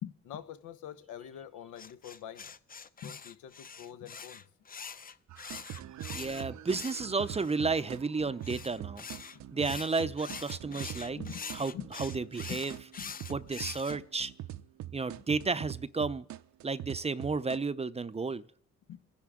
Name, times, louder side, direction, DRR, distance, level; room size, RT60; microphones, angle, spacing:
voice 1, 0.0-2.5 3.0-4.4 9.3-9.4 10.7-10.8 11.2-11.4 11.7-11.9 12.5-13.1 18.9-19.0, left 10 dB, 85° left, 1.1 m, -44 dB
sound 1, 1.8-7.6 8.4-13.9, left 6 dB, 30° left, 0.7 m, -44 dB
sound 2, 5.3-17.6, right 12 dB, 65° right, 0.7 m, -43 dB
voice 2, 6.1-9.1 9.5-11.2 11.5-12.7 13.3-14.3 14.9-16.3 16.6-18.4, right 4 dB, 20° right, 0.6 m, -32 dB
27.5 x 10.5 x 3.7 m
cardioid pair, 90°, 30 cm